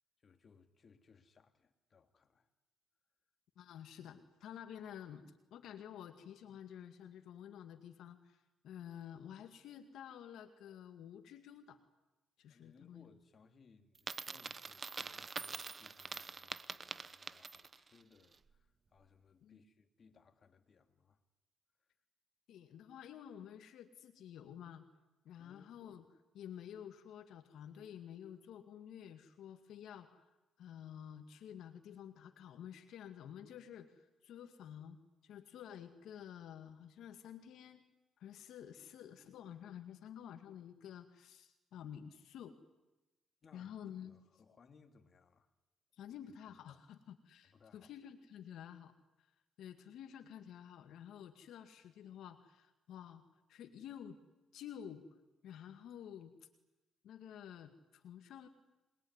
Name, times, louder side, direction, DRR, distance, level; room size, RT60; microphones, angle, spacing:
voice 1, 0.2-2.5 12.5-21.2 21.8-21.9 25.4-25.8 35.3-35.4 43.4-43.7 44.1-45.5 46.1-46.2 46.5-46.8 47.4-47.9, left 5 dB, 45° left, 2.9 m, -66 dB
voice 2, 3.6-11.8 12.4-13.1 19.4-19.6 22.5-24.9 25.2-26.0 26.3-30.3 30.6-35.0 35.2-37.8 38.2-42.6 43.5-44.2 45.9-48.9 49.2-49.3 49.6-53.2 53.5-54.2 54.5-55.0 55.4-56.4 57.0-58.5, left 9 dB, 80° left, 2.2 m, -51 dB
Coin (dropping), 14.0-17.9, right 4 dB, 35° right, 1.0 m, -45 dB
28.0 x 21.5 x 9.8 m
cardioid pair, 90°, 0 cm